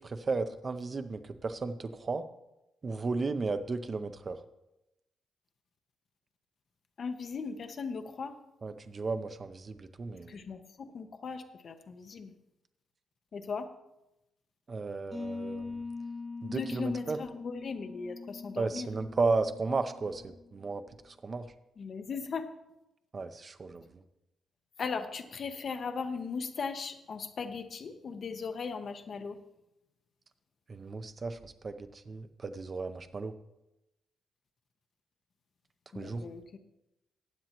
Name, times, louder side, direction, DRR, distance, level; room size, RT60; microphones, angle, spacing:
voice 1, 0.0-2.3 2.8-4.4 8.6-10.4 14.7-15.8 16.4-17.2 18.6-21.5 23.1-24.0 30.7-33.3 35.9-36.3, right 3 dB, 25° right, 9 dB, 0.5 m, -34 dB
voice 2, 7.0-8.4 10.1-12.3 13.3-13.7 16.4-18.9 21.8-22.5 24.8-29.4 35.9-36.6, left 5 dB, 40° left, 7 dB, 0.8 m, -38 dB
sound 1, 15.1-20.7, left 4 dB, 10° left, 1.7 m, -42 dB
15.0 x 9.2 x 2.9 m, 0.90 s
wide cardioid pair, 175°, 0 cm